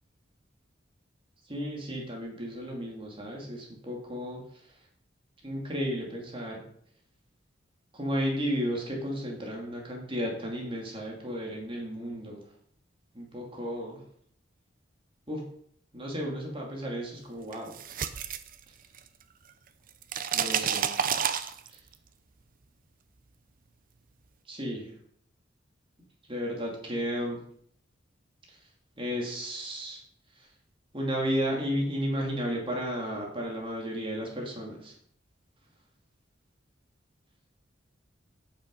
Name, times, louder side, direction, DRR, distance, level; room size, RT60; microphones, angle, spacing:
voice 1, 1.4-4.8 5.4-6.6 7.9-12.4 13.1-14.0 15.3-15.5 15.9-17.7 20.3-20.9 21.7-21.8 24.5-24.9 26.3-27.4 28.5-28.7 29.0-30.0 30.4-30.5 30.9-34.9, equal, 30° right, -1 dB, 2.5 m, -33 dB
sound 1, 17.5-19.2 19.5-21.9, right 7 dB, 45° right, 0.7 m, -30 dB
9.2 x 7.4 x 5.4 m, 0.64 s
head